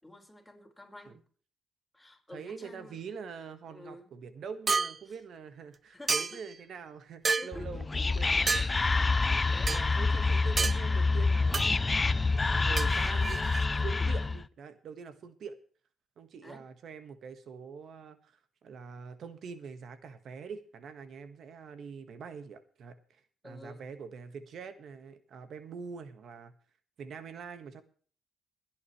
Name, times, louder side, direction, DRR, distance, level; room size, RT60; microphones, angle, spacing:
voice 1, 0.0-1.2 1.9-3.0 3.6-4.1 5.0-5.2 5.9-6.3 7.4-7.7 9.2-10.0 13.9-14.1 16.4-16.6 23.4-23.9, left 1 dB, 5° left, 1 dB, 5.1 m, -50 dB
voice 2, 2.3-8.7 9.7-12.2 12.6-13.4 13.8-15.5 16.2-26.5 27.0-27.8, right 6 dB, 65° right, 10 dB, 1.6 m, -44 dB
sound 1, 4.7-5.0 6.1-6.5 7.2-7.5 8.5-8.7 9.7-9.8 10.6-10.8 11.5-11.7 12.8-13.7, right 4 dB, 35° right, 0.5 m, -29 dB
Whispering, 7.5-14.4, left 3 dB, 25° left, 0.5 m, -27 dB
21.5 x 9.6 x 3.3 m, 0.44 s
cardioid pair, 90°, 0 cm